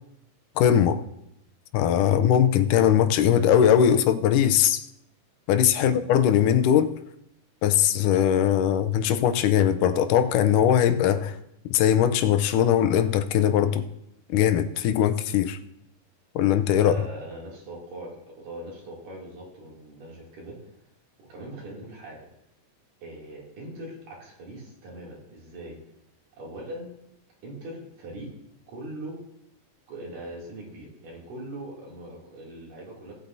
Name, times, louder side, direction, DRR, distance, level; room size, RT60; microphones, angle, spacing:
voice 1, 0.6-1.0 1.7-4.8 5.5-6.9 7.6-11.4 11.7-13.9 14.3-15.6 16.4-16.9, left 9 dB, 85° left, 2.2 m, -20 dB
voice 2, 16.8-20.7 21.2-22.2 23.0-25.8 26.4-26.9 27.4-28.4 28.7-29.2 29.9-33.2, right 1 dB, 85° right, 4.5 m, -41 dB
18.5 x 8.4 x 2.7 m
omnidirectional pair, 3.6 m